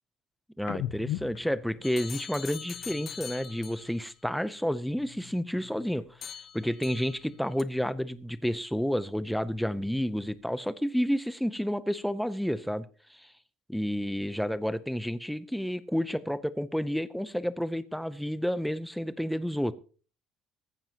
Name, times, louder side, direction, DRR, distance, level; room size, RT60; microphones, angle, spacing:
sound 1, 0.6-4.2 4.5-6.4 6.6-8.5 8.8-10.7, left 13 dB, 85° left, 0.7 m, -44 dB
voice 1, 0.6-13.3 13.7-19.7, equal, ahead, 15 dB, 0.5 m, -30 dB
sound 2, 1.8-4.0 6.2-7.3 7.6-7.7, left 8 dB, 35° left, 0.8 m, -42 dB
18.0 x 15.0 x 2.9 m, 0.38 s
cardioid pair, 175°, 0 cm